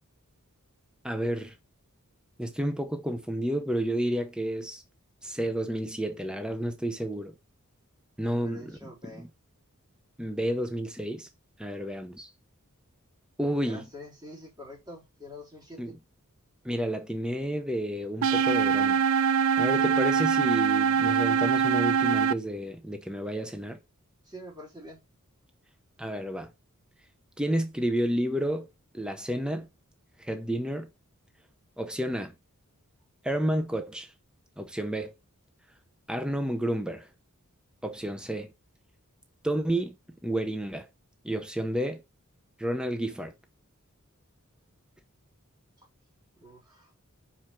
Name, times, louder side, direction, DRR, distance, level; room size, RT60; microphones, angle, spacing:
voice 1, 1.0-1.5 2.4-4.8 5.2-7.3 8.2-8.9 9.1-9.3 10.2-11.3 11.6-12.3 13.4-13.9 15.8-16.0 16.6-19.0 19.6-23.8 26.0-26.5 27.4-28.7 28.9-29.7 30.2-30.9 31.8-32.3 33.2-34.1 34.6-35.1 36.1-37.1 37.8-38.5 39.4-39.9 40.2-40.9 41.2-42.0 42.6-43.3, right 1 dB, 5° right, 0.7 m, -30 dB
voice 2, 8.2-9.3 13.6-16.0 24.2-25.0 46.4-46.9, left 1 dB, 20° right, 3.3 m, -46 dB
sound 1, 18.2-22.3, right 6 dB, 70° right, 0.4 m, -23 dB
5.7 x 4.8 x 5.9 m
head